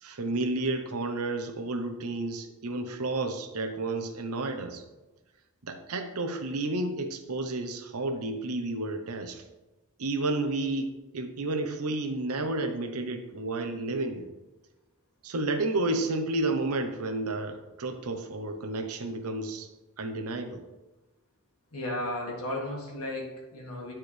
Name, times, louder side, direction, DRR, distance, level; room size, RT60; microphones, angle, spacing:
voice 1, 0.0-4.8 5.6-9.4 10.0-14.3 15.2-19.7 20.0-20.6, right 2 dB, 75° right, 6 dB, 0.8 m, -31 dB
voice 2, 21.7-23.9, left 1 dB, 75° left, -2 dB, 1.7 m, -34 dB
9.9 x 4.4 x 3.3 m, 1.1 s
head